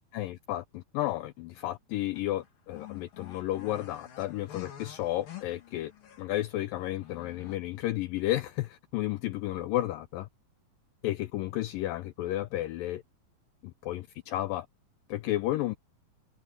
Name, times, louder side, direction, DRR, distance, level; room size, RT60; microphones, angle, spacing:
voice 1, 0.1-5.9 6.2-10.3 11.0-13.0 13.6-14.7 15.1-15.8, left 15 dB, 85° left, 2.0 m, -32 dB
sound 1, 2.1-6.4 6.7-7.6, left 11 dB, 60° left, 4.6 m, -48 dB
omnidirectional pair, 4.6 m